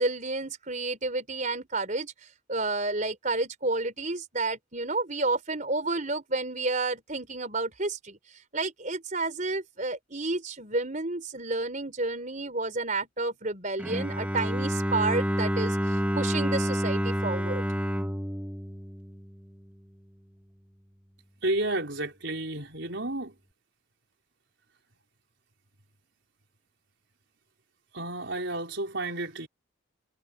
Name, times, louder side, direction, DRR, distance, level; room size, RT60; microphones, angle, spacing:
voice 1, 0.0-17.6, right 3 dB, 40° right, 4.7 m, -30 dB
Bowed string instrument, 13.8-19.7, equal, 5° right, 3.1 m, -29 dB
voice 2, 21.4-23.3 27.9-29.5, right 2 dB, 60° right, 4.9 m, -31 dB
head